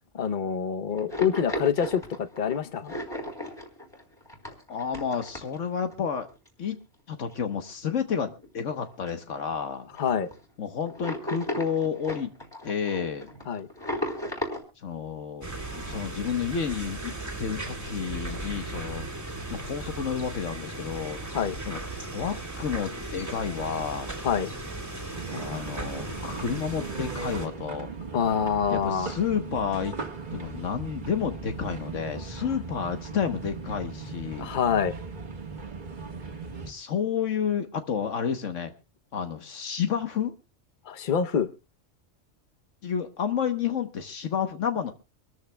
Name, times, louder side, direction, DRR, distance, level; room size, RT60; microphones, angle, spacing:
voice 1, 0.1-2.9 10.0-10.3 13.5-13.7 21.3-21.5 24.2-24.5 28.1-29.1 34.4-34.9 40.9-41.5, left 7 dB, 45° left, 0.9 m, -26 dB
sound 1, 1.0-5.9 6.3-6.5 7.2-7.3 7.7-7.8 8.2-8.7 9.1-9.2 9.4-9.5 9.9-10.4 10.9-14.6, left 1 dB, 20° left, 3.6 m, -35 dB
voice 2, 4.7-6.3 6.6-6.8 7.1-9.9 10.6-12.3 12.6-13.3 14.8-15.5 15.8-19.1 19.5-21.2 21.7-21.8 22.1-24.1 25.3-27.9 28.7-30.0 30.3-34.5 36.7-38.7 39.1-40.4 42.8-44.9, left 7 dB, 75° left, 1.4 m, -30 dB
sound 2, 15.4-27.5, right 2 dB, 15° right, 2.2 m, -37 dB
sound 3, 25.1-36.7, right 4 dB, 40° right, 1.7 m, -38 dB
25.5 x 13.5 x 2.3 m
omnidirectional pair, 1.3 m